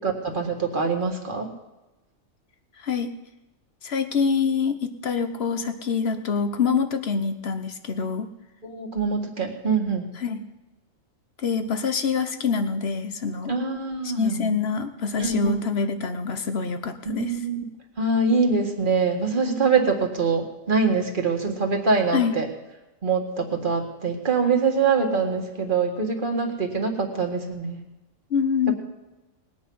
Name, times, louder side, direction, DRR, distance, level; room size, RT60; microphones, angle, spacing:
voice 1, 0.0-1.5 8.6-10.1 13.5-14.5 15.2-15.6 17.1-17.6 18.0-22.5 23.0-27.8, right 4 dB, 40° right, 2 dB, 2.0 m, -24 dB
voice 2, 2.8-3.1 3.8-8.3 10.2-10.4 11.4-13.5 14.0-17.4 22.1-22.4 28.3-28.7, left 5 dB, 55° left, 9 dB, 1.3 m, -25 dB
20.0 x 8.6 x 5.6 m, 1.0 s
omnidirectional pair, 1.4 m